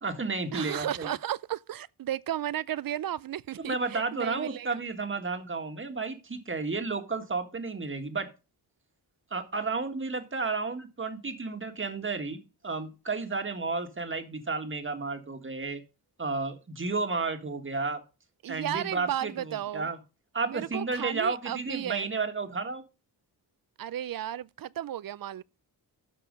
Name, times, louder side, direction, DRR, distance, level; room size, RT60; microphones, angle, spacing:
voice 1, 0.0-1.1 3.6-8.3 9.3-15.8 16.2-18.0 18.5-20.0 20.3-22.8, right 4 dB, 30° right, 1.8 m, -32 dB
voice 2, 0.5-4.8 18.4-19.9 20.4-22.1 23.8-25.4, right 11 dB, 60° right, 0.5 m, -34 dB
13.0 x 4.8 x 5.2 m
wide cardioid pair, 95°, 40 cm